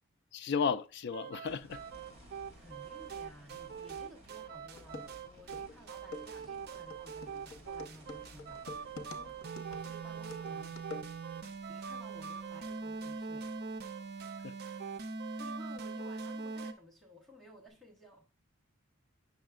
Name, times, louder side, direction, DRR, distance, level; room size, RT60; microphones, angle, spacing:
voice 1, 0.3-1.8 14.4-14.5, left 6 dB, 55° left, 0.4 m, -33 dB
sound 1, 1.1-16.7, right 5 dB, 50° right, 0.5 m, -42 dB
sound 2, 1.5-13.8 14.2-14.3 17.7-17.8, equal, 30° right, 2.6 m, -58 dB
voice 2, 2.5-10.8 11.1-11.2 11.7-13.5 14.6-18.3, equal, ahead, 1.2 m, -56 dB
sound 3, 4.3-4.4 4.8-11.5, left 3 dB, 80° left, 0.9 m, -48 dB
8.0 x 6.2 x 2.4 m
head